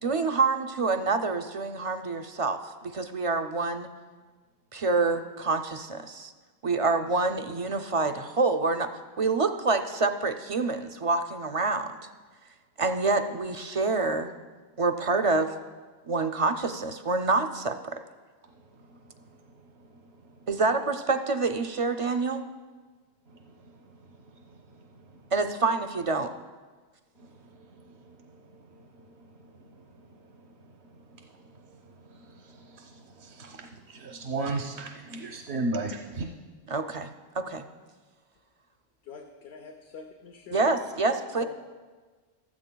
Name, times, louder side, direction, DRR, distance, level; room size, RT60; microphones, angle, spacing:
voice 1, 0.0-3.9 4.7-6.3 6.6-11.9 12.8-14.3 14.8-15.5 16.0-18.0 20.5-22.4 25.3-26.3 36.7-37.1 37.4-37.6 40.5-41.4, right 3 dB, 50° right, 7 dB, 0.4 m, -27 dB
voice 2, 19.5-20.3 23.3-24.0 24.3-25.3 27.2-36.3, right 2 dB, 90° right, 2 dB, 1.0 m, -39 dB
voice 3, 39.1-40.6 41.4-41.5, left 6 dB, 85° left, 3 dB, 1.0 m, -44 dB
15.5 x 12.5 x 2.2 m, 1.4 s
omnidirectional pair, 1.0 m